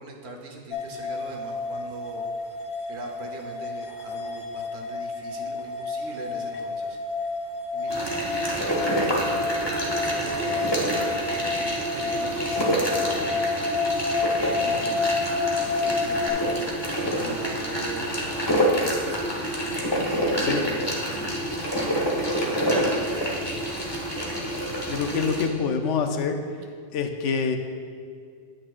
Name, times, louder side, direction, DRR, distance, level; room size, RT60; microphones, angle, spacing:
voice 1, 0.0-2.3 2.9-7.3 7.7-8.5 9.0-10.8 11.1-16.7 17.1-19.9 20.4-21.8 22.3-23.5, right 2 dB, 65° right, 2 dB, 1.2 m, -42 dB
sound 1, 0.7-16.3, left 3 dB, 45° left, 0.4 m, -30 dB
sound 2, 7.9-25.5, equal, 25° left, 1.1 m, -27 dB
voice 2, 24.9-26.4 26.9-27.6, left 6 dB, 85° left, 5 dB, 1.0 m, -26 dB
8.9 x 8.5 x 2.4 m, 2.1 s
omnidirectional pair, 1.2 m